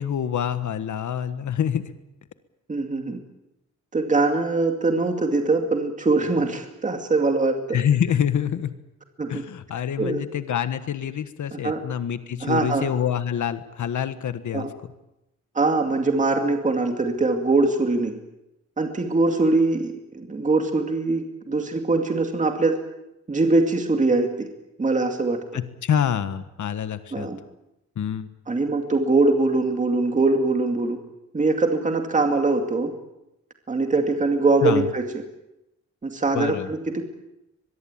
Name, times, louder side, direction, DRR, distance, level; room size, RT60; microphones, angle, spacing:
voice 1, 0.0-1.8 7.7-8.7 9.3-14.9 25.5-27.3 28.0-28.3 34.6-34.9 36.3-36.7, left 9 dB, 80° left, 11 dB, 1.5 m, -26 dB
voice 2, 2.7-3.2 3.9-7.8 9.2-9.4 10.0-10.2 11.6-11.8 12.4-12.9 14.5-14.7 15.5-18.1 18.8-22.8 23.3-24.5 24.8-25.4 27.1-27.4 28.5-31.0 31.3-32.9 33.7-35.0 36.0-37.0, right 3 dB, 25° right, 4 dB, 2.3 m, -22 dB
23.0 x 22.5 x 8.9 m, 0.90 s
wide cardioid pair, 180°, 29 cm